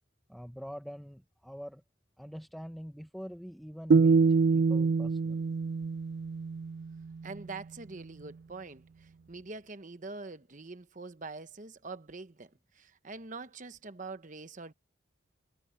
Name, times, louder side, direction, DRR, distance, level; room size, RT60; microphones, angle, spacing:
voice 1, 0.3-1.8 2.2-4.2 4.5-5.4, equal, ahead, 0.9 m, -44 dB
sound 1, 3.9-7.0, right 4 dB, 55° right, 0.3 m, -25 dB
voice 2, 7.2-14.7, right 3 dB, 40° right, 1.0 m, -44 dB
head